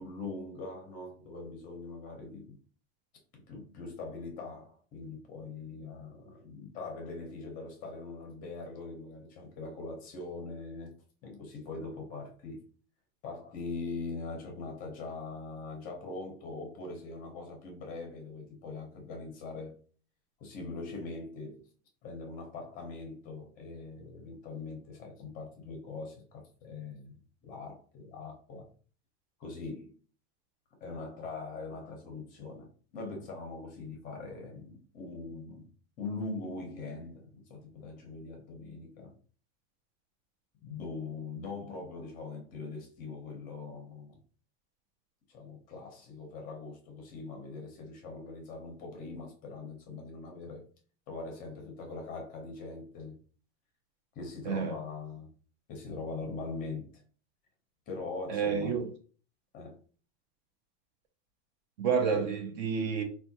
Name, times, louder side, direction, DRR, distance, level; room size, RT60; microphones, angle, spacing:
voice 1, 0.0-2.6 3.5-11.0 11.2-12.6 13.2-19.8 20.4-21.6 22.0-27.1 27.4-28.7 29.4-29.9 30.8-35.7 36.0-39.1 40.6-44.2 45.3-50.6 51.1-53.2 54.2-55.3 55.7-56.9 57.9-58.8 59.5-59.8 62.1-62.3, left 3 dB, 25° left, 0.6 m, -42 dB
voice 2, 54.5-54.8 58.3-58.9 61.8-63.0, right 6 dB, 45° right, 0.4 m, -29 dB
3.5 x 2.2 x 2.6 m
supercardioid pair, 175°, 33 cm